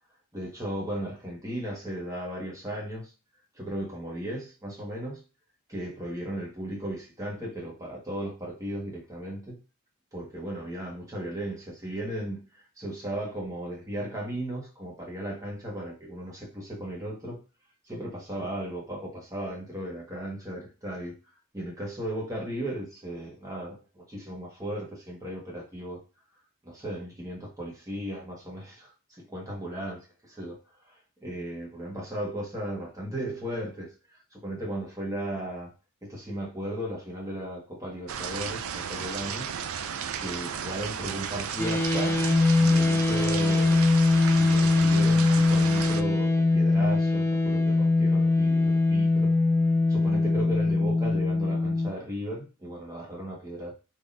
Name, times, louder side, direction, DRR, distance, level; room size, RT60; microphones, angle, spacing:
voice 1, 0.3-3.1 3.5-5.2 5.7-9.6 10.1-17.4 17.8-21.2 21.5-26.0 26.6-35.7 36.0-39.5 40.2-42.2 42.6-43.8 44.4-49.3 49.9-53.7, right 1 dB, 15° right, 1.4 m, -36 dB
sound 1, 38.1-46.0, right 7 dB, 65° right, 0.4 m, -34 dB
sound 2, 41.6-51.9, left 3 dB, 10° left, 0.4 m, -22 dB
3.7 x 2.9 x 2.5 m
head